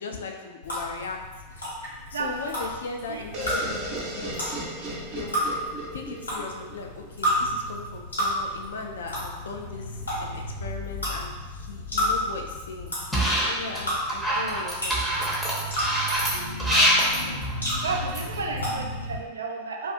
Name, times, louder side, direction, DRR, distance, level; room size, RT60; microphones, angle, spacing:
voice 1, 0.0-4.5 4.9-5.4 5.9-13.2 13.4-15.3, left 4 dB, 65° left, 2 dB, 0.3 m, -38 dB
sound 1, 0.6-19.2, equal, 80° left, 1.1 m, -32 dB
voice 2, 2.1-2.7 3.1-3.2 16.6-17.4 17.8-19.9, right 4 dB, 70° right, 1 dB, 0.3 m, -33 dB
sound 2, 3.3-7.1, right 1 dB, 40° right, 0.7 m, -35 dB
sound 3, 13.1-13.8 14.1-18.4, equal, ahead, 0.6 m, -24 dB
2.4 x 2.3 x 2.5 m, 1.3 s
figure-of-eight pair, 90°, 0 cm